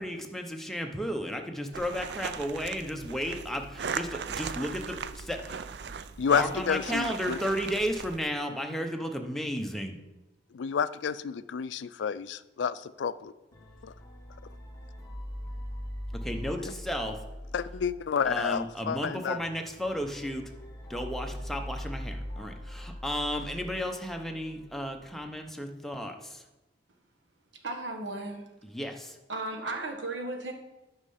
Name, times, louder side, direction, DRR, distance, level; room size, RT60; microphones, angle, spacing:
voice 1, 0.0-6.0 6.3-10.0 16.2-17.2 18.2-20.4 20.9-26.4 28.7-29.2, equal, ahead, 3 dB, 0.8 m, -34 dB
sound 1, 1.7-8.2, right 6 dB, 65° right, 0.4 m, -38 dB
voice 2, 6.2-7.4 10.5-13.3 13.8-13.9 16.6-16.7 17.5-19.4, left 7 dB, 80° left, 16 dB, 0.4 m, -30 dB
sound 2, 13.5-25.2, equal, 20° left, 1.3 m, -42 dB
voice 3, 27.5-28.5 29.3-30.5, right 2 dB, 85° right, 3 dB, 1.5 m, -35 dB
9.7 x 5.5 x 5.6 m, 1.0 s
head